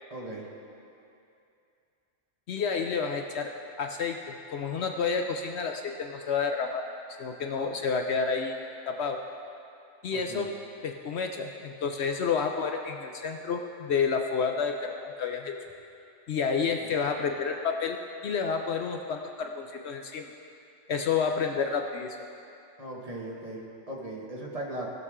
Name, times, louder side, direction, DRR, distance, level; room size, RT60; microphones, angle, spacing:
voice 1, 0.1-0.4 10.1-10.5 16.4-16.6 22.8-24.9, right 1 dB, 30° right, -4 dB, 1.5 m, -38 dB
voice 2, 2.5-3.5 3.8-6.8 7.1-8.6 8.9-9.2 10.0-10.5 10.8-15.5 16.3-18.0 18.2-20.3 20.9-22.2, left 5 dB, 65° left, 4 dB, 0.8 m, -30 dB
18.5 x 6.7 x 3.6 m, 2.6 s
omnidirectional pair, 1.3 m